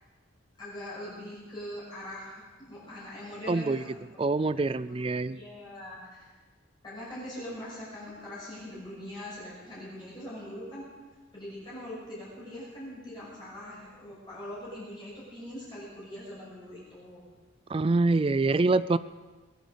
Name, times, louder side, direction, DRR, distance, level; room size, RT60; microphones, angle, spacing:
voice 1, 0.6-2.4 2.7-4.0 4.4-6.3 6.8-10.8 11.3-17.2, left 1 dB, 20° left, -8 dB, 6.3 m, -42 dB
voice 2, 3.5-3.8 4.2-5.4 17.7-19.0, right 3 dB, 25° right, 16 dB, 0.4 m, -25 dB
21.5 x 9.2 x 6.9 m, 1.3 s
head